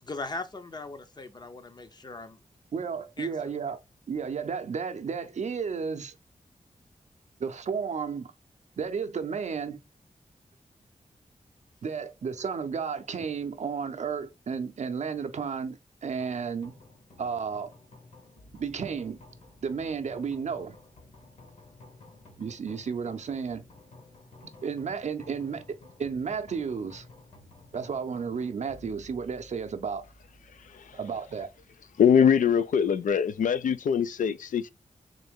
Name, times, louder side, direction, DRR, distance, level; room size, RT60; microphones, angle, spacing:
voice 1, 0.0-2.4 3.2-3.3, left 3 dB, 30° left, 0.6 m, -39 dB
voice 2, 2.7-3.8 4.1-6.1 7.4-8.3 8.8-9.8 11.8-16.7 17.2-17.7 18.5-19.2 19.6-20.8 22.4-23.6 24.6-25.6 26.0-27.1 27.7-30.0 30.9-31.5, right 6 dB, 60° right, 0.5 m, -32 dB
sound 1, 16.2-33.4, left 2 dB, 55° left, 1.3 m, -54 dB
voice 3, 30.6-31.0 32.0-34.7, left 7 dB, 85° left, 0.4 m, -23 dB
3.8 x 2.6 x 3.5 m
wide cardioid pair, 150°, 13 cm